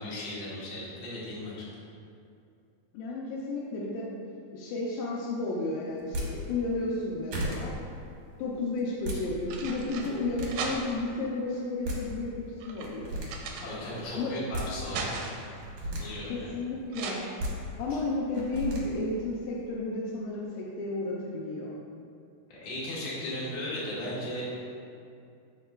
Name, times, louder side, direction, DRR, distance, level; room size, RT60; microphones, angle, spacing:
voice 1, 0.0-1.7 13.6-15.1 15.9-16.4 22.6-24.5, left 1 dB, 55° left, -9 dB, 2.9 m, -36 dB
voice 2, 2.9-4.1 4.5-7.8 8.4-13.2 14.1-14.3 16.2-17.2 17.8-21.7, left 2 dB, 85° left, -4 dB, 2.9 m, -32 dB
sound 1, 6.0-6.3 7.0-7.1 7.3-7.6 8.8-9.2 9.9-10.5 11.5-11.6 11.8-12.0 12.8-13.3 14.3-14.7 15.5-16.0 17.2-17.5 18.3-18.8, right 1 dB, 65° right, 1.9 m, -34 dB
sound 2, 8.0-8.2 9.1-11.2 11.9-14.1 14.5-15.6 16.9-17.1, right 4 dB, 80° right, 2.4 m, -38 dB
13.5 x 4.5 x 2.4 m, 2.4 s
omnidirectional pair, 5.0 m